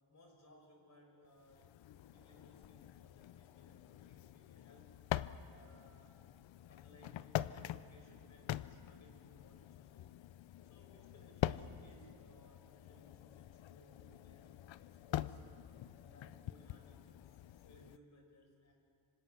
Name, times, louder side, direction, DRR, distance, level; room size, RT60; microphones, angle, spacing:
voice 1, 0.1-1.7 2.0-4.9 5.5-6.2 6.7-10.2 10.6-14.6 15.1-15.5 16.0-18.7, left 1 dB, 35° left, 2 dB, 4.8 m, -64 dB
sound 1, 1.4-18.0, left 12 dB, 75° left, 0.6 m, -45 dB
26.5 x 25.0 x 6.2 m, 2.6 s
wide cardioid pair, 165°, 46 cm